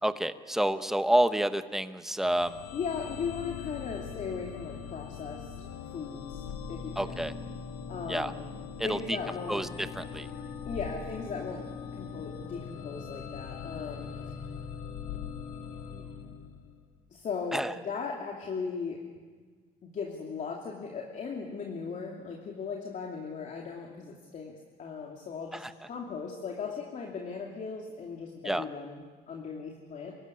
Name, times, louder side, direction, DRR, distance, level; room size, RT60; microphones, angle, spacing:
voice 1, 0.0-2.5 7.0-7.3 8.1-8.3 8.8-9.0 9.5-9.7 10.0-10.3 17.5-17.7 25.5-25.7 28.4-28.6, right 1 dB, ahead, 11 dB, 1.0 m, -28 dB
sound 1, 2.2-16.9, left 6 dB, 90° left, 1.8 m, -41 dB
voice 2, 2.7-5.5 5.9-7.3 7.9-8.5 8.8-9.7 10.7-14.1 15.9-16.0 17.1-19.0 19.8-30.2, left 5 dB, 45° left, 0 dB, 2.7 m, -38 dB
25.5 x 15.5 x 9.7 m, 1.5 s
cardioid pair, 110°, 17 cm